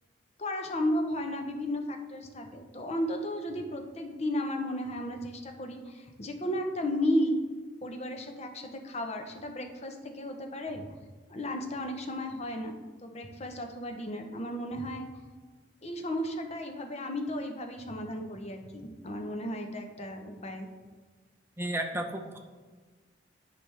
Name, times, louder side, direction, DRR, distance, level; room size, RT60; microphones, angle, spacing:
voice 1, 0.4-7.4 7.8-10.8 11.3-12.8 13.0-15.1 15.8-20.7, left 1 dB, 35° left, 4 dB, 0.8 m, -34 dB
voice 2, 21.6-22.4, right 1 dB, 15° right, 3 dB, 0.7 m, -33 dB
9.7 x 5.1 x 3.3 m, 1.4 s
head